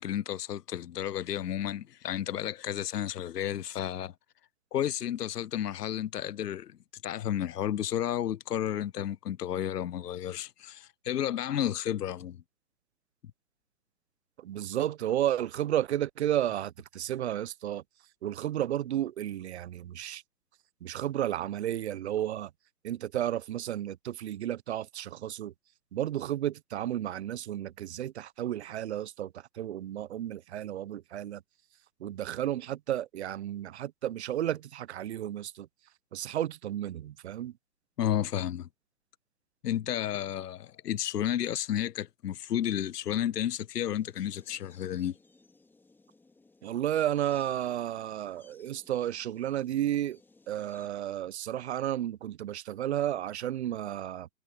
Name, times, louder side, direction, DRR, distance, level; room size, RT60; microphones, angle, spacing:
voice 1, 0.0-4.1 4.7-6.8 7.0-12.4 38.0-38.7 39.6-45.2, left 10 dB, 70° left, 0.8 m, -32 dB
voice 2, 14.4-17.8 18.2-20.2 20.8-22.5 22.8-25.5 25.9-31.4 32.0-35.7 36.1-37.5 46.6-50.2 50.5-54.3, right 12 dB, 40° right, 0.9 m, -32 dB
sound 1, 43.9-50.9, left 3 dB, 5° left, 2.8 m, -61 dB
hypercardioid pair, 135°, 50 cm